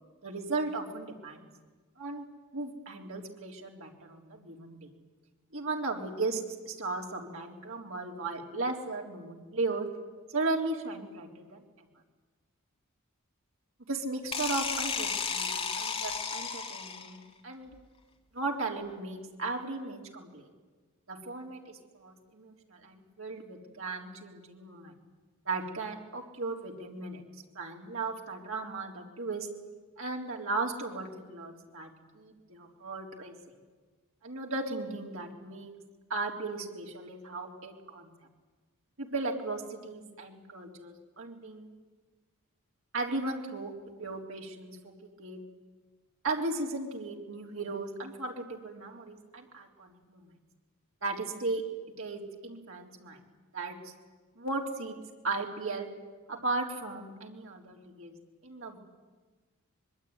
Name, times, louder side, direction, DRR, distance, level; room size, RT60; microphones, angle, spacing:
voice 1, 0.2-1.4 2.0-2.2 2.5-4.9 5.5-9.9 10.3-11.9 13.9-17.2 17.4-17.7 18.3-20.5 21.1-24.9 25.5-27.2 27.5-29.5 30.0-33.4 34.2-35.7 36.1-38.1 39.0-41.7 42.9-43.7 44.0-44.9 45.2-45.4 46.2-50.2 51.0-51.6 52.0-53.2 53.5-53.9 54.4-55.0 55.2-55.9 56.3-58.1 58.4-58.8, right 3 dB, 65° right, 1 dB, 3.7 m, -36 dB
sound 1, 14.3-17.2, left 5 dB, 25° left, 2.2 m, -33 dB
25.0 x 21.5 x 9.7 m, 1.3 s
head